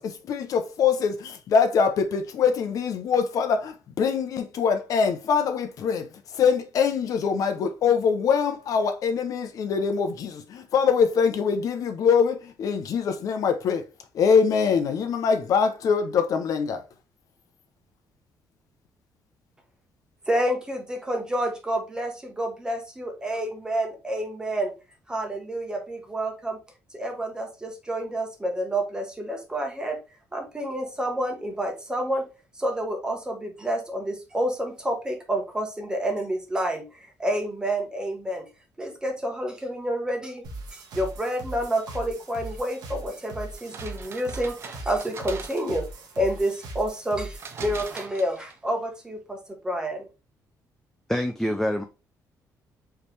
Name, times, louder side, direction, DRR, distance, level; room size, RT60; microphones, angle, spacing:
voice 1, 0.0-13.8 14.1-16.8, left 6 dB, 60° left, 0.7 m, -23 dB
voice 2, 20.3-24.7 25.1-26.6 26.9-30.0 30.3-32.3 32.6-38.5 38.8-40.4 40.7-45.8 46.2-50.1, right 1 dB, 10° right, 1.2 m, -29 dB
sound 1, 40.4-48.0, right 2 dB, 85° right, 1.4 m, -39 dB
sound 2, 43.6-45.9 47.4-48.7, right 5 dB, 40° right, 0.7 m, -42 dB
voice 3, 51.1-51.8, equal, 5° left, 0.4 m, -25 dB
4.8 x 3.2 x 3.3 m
cardioid pair, 155°, 7 cm